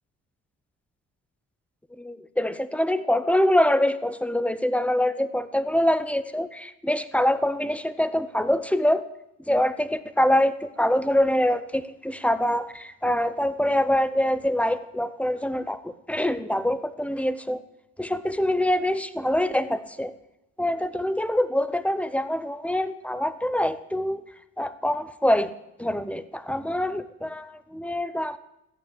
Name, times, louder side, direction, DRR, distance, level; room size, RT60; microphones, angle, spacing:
voice 1, 2.0-9.1 9.5-17.6 18.0-20.1 20.6-24.2 24.6-25.5 25.8-28.4, left 1 dB, 5° left, 14 dB, 0.9 m, -24 dB
14.0 x 8.8 x 9.1 m, 0.89 s
cardioid pair, 90°, 30 cm